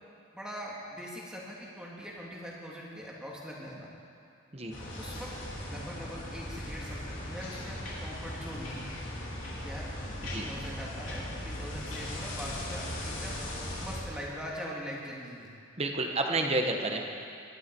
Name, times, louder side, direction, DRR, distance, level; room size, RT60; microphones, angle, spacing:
voice 1, 0.3-3.9 5.0-5.4 5.7-9.0 9.6-9.9 10.2-13.4 13.8-15.5, equal, 5° right, -5 dB, 2.2 m, -42 dB
sound 1, 4.7-14.0, left 1 dB, 70° left, 4.2 m, -38 dB
voice 2, 15.8-17.0, right 2 dB, 30° right, 3 dB, 1.3 m, -30 dB
23.5 x 12.0 x 4.7 m, 2.5 s
head